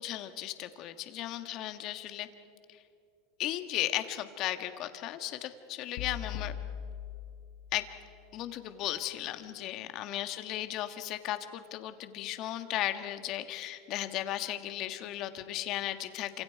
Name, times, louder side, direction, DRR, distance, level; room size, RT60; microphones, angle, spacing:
voice 1, 0.0-2.3 2.7-2.8 3.4-6.5 7.7-7.8 8.3-16.4, left 13 dB, 50° left, 9 dB, 1.6 m, -36 dB
sound 1, 6.0-8.2, left 9 dB, 70° left, 1.0 m, -40 dB
28.0 x 26.5 x 4.7 m, 2.7 s
supercardioid pair, 120°, 0 cm